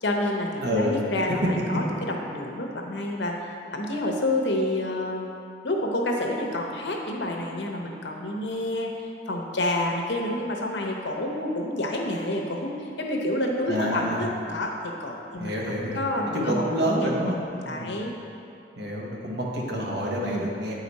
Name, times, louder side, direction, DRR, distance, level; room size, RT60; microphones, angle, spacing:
voice 1, 0.0-3.3 3.7-5.3 5.6-8.9 9.3-17.3 17.7-18.1 20.2-20.4, left 1 dB, 80° left, 1 dB, 0.9 m, -29 dB
voice 2, 0.6-1.0 13.7-14.2 15.4-17.4 17.6-17.9 18.8-20.7, equal, 75° right, -3 dB, 1.2 m, -28 dB
7.9 x 5.0 x 4.2 m, 2.6 s
head